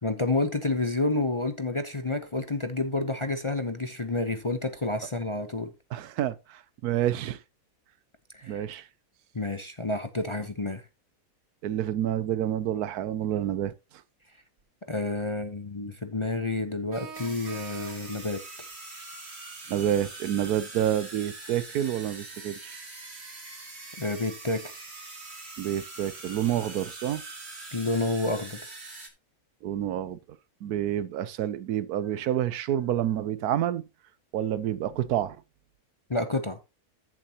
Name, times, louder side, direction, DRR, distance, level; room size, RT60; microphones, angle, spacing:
voice 1, 0.0-5.7 8.3-8.7 9.3-10.8 14.9-18.4 24.0-24.9 27.7-28.6 36.1-36.6, left 2 dB, 25° left, 0.7 m, -29 dB
voice 2, 5.9-7.4 8.5-8.8 11.6-13.7 19.7-22.8 25.6-27.2 29.6-30.2 30.6-33.8 34.3-35.4, right 11 dB, 85° right, 1.2 m, -28 dB
sound 1, 14.6-14.7 16.9-18.3, right 5 dB, 65° right, 1.9 m, -43 dB
sound 2, 17.1-29.1, right 3 dB, 45° right, 2.4 m, -43 dB
13.5 x 7.5 x 2.9 m
omnidirectional pair, 1.6 m